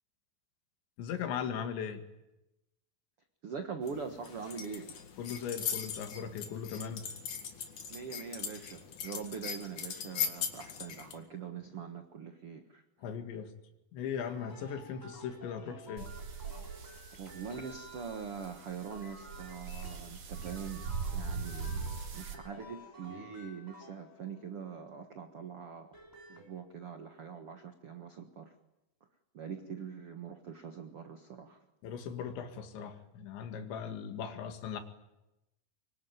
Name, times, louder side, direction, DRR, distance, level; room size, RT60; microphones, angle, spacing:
voice 1, 1.0-2.0 5.2-7.0 13.0-13.5 13.9-16.1 31.8-34.8, left 7 dB, 80° left, 7 dB, 4.3 m, -38 dB
voice 2, 3.4-5.0 7.9-12.8 17.2-25.9 26.3-28.5 29.3-31.6, right 6 dB, 80° right, 6 dB, 1.2 m, -43 dB
sound 1, 3.8-11.2, left 7 dB, 50° left, 2.9 m, -40 dB
sound 2, 14.2-24.7 25.7-26.5, equal, 5° left, 2.7 m, -53 dB
sound 3, 16.0-22.3, right 5 dB, 50° right, 3.5 m, -41 dB
25.0 x 23.5 x 9.4 m, 0.95 s
omnidirectional pair, 5.1 m